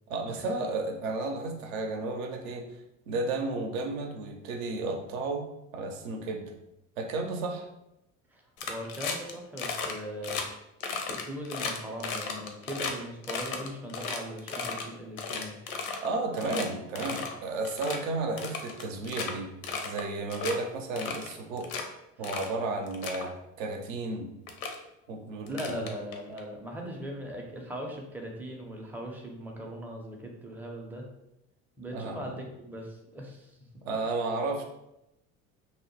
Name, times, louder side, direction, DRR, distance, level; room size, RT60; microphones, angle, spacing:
voice 1, 0.1-2.8 3.1-5.4 5.7-6.5 7.0-7.7 16.0-19.5 19.8-21.7 22.2-23.3 23.6-24.3 25.1-25.9 31.9-32.4 33.8-34.6, right 3 dB, 65° right, 3 dB, 0.6 m, -33 dB
sound 1, 8.6-9.3 9.6-9.9 10.2-10.4 10.8-12.9 13.2-14.8 15.2-16.1 16.4-16.6 16.9-17.3 17.6-18.0 18.4-19.3 19.6-20.0 20.3-20.5 21.0-21.8 22.2-22.5 22.9-23.2 24.0-24.1 24.5-24.7 25.5-26.4, left 5 dB, 75° left, 0.6 m, -34 dB
voice 2, 8.7-10.4 11.1-15.6 22.2-22.3 25.5-31.1 31.8-33.6, equal, 5° right, 0 dB, 0.4 m, -39 dB
2.8 x 2.0 x 2.8 m, 0.87 s
figure-of-eight pair, 65°, 43 cm